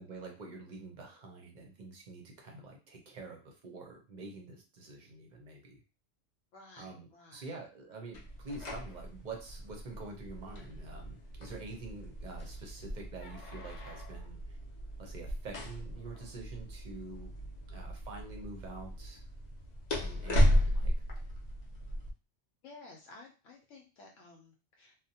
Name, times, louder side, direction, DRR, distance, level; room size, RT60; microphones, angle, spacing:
voice 1, 0.0-5.8 6.8-14.6 15.0-17.4 17.7-19.2 20.0-20.9, right 3 dB, 50° right, 2 dB, 0.6 m, -47 dB
voice 2, 6.5-7.5 22.6-24.9, left 3 dB, 75° left, 0 dB, 0.9 m, -54 dB
sound 1, 8.1-22.1, equal, 50° left, 0.5 m, -35 dB
2.7 x 2.1 x 2.7 m, 0.33 s
omnidirectional pair, 1.3 m